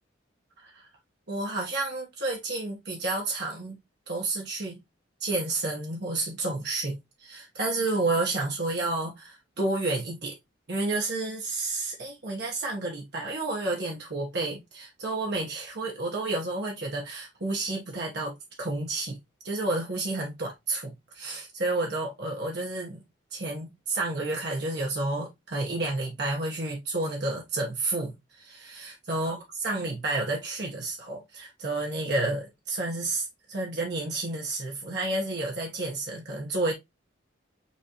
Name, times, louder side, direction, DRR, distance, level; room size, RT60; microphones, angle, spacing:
voice 1, 1.3-3.8 4.1-4.8 5.2-10.3 10.7-19.2 19.4-23.0 23.3-36.7, right 2 dB, 60° right, 1.2 m, -30 dB
6.0 x 2.8 x 2.9 m
head